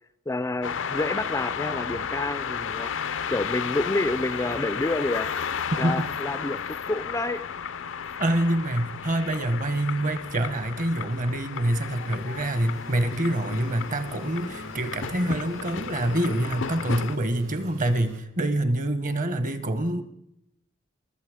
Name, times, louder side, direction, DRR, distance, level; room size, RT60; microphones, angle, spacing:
voice 1, 0.3-5.3 5.8-7.4, left 2 dB, 15° left, 12 dB, 0.4 m, -29 dB
sound 1, 0.6-17.2, left 7 dB, 70° left, 0.5 m, -33 dB
voice 2, 8.2-20.0, right 1 dB, 40° right, 11 dB, 1.0 m, -26 dB
sound 2, 11.8-18.2, right 1 dB, 75° right, 2.6 m, -45 dB
20.0 x 7.7 x 5.0 m, 0.82 s
head